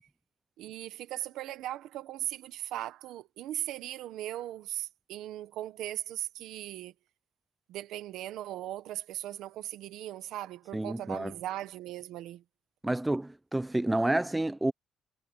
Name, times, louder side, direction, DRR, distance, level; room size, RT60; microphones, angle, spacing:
voice 1, 0.6-6.9 7.7-12.4, right 13 dB, 90° right, 1.4 m, -38 dB
voice 2, 10.7-11.3 12.8-14.7, right 1 dB, 10° right, 0.8 m, -29 dB
cardioid pair, 90°, 0 cm